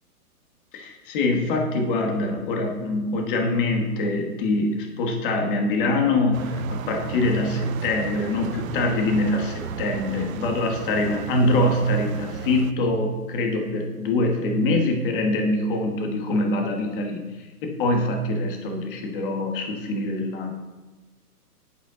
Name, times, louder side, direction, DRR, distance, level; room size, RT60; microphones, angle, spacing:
voice 1, 0.7-17.2 17.6-20.5, left 2 dB, 35° left, 3 dB, 1.4 m, -24 dB
sound 1, 6.3-12.7, right 9 dB, 60° right, 0.6 m, -35 dB
8.3 x 7.7 x 3.8 m, 1.2 s
hypercardioid pair, 150°, 46 cm